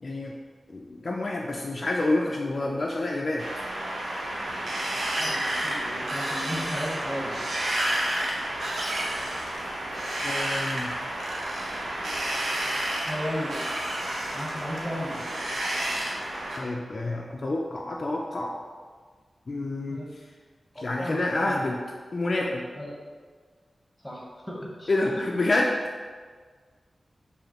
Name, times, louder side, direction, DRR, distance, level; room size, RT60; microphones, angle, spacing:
voice 1, 0.0-0.3 0.7-3.5 10.2-10.9 16.6-18.6 19.5-20.2 20.8-21.8 22.1-22.7 24.9-26.1, left 2 dB, 50° left, -1 dB, 0.3 m, -28 dB
Wind, 3.4-16.6, right 1 dB, 90° right, 0.6 m, -30 dB
voice 2, 5.1-7.5 13.1-13.6 14.3-15.2 19.9-20.1 20.7-21.6 22.7-23.0 24.0-24.9, equal, 5° left, -3 dB, 0.9 m, -35 dB
4.9 x 2.6 x 2.9 m, 1.5 s
wide cardioid pair, 100°, 0 cm